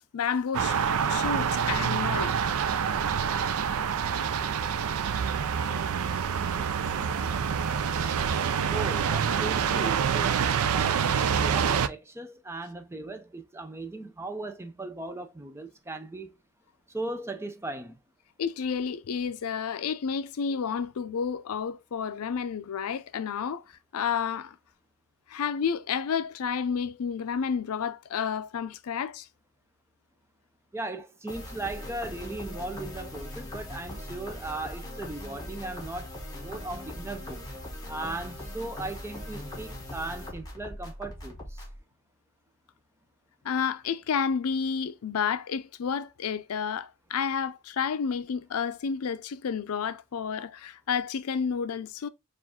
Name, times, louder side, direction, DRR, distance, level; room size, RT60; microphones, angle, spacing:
voice 1, 0.1-0.8 1.1-2.4 18.4-23.6 23.9-24.6 25.3-29.3 43.4-52.1, left 6 dB, 85° left, 0.4 m, -30 dB
sound 1, 0.5-11.9, right 7 dB, 85° right, 0.4 m, -27 dB
voice 2, 8.7-10.4 10.7-16.3 16.9-18.0 30.7-37.4 37.9-41.7, right 2 dB, 10° right, 0.4 m, -37 dB
sound 2, 31.3-41.8, left 1 dB, 15° left, 1.1 m, -40 dB
4.6 x 2.5 x 3.6 m
head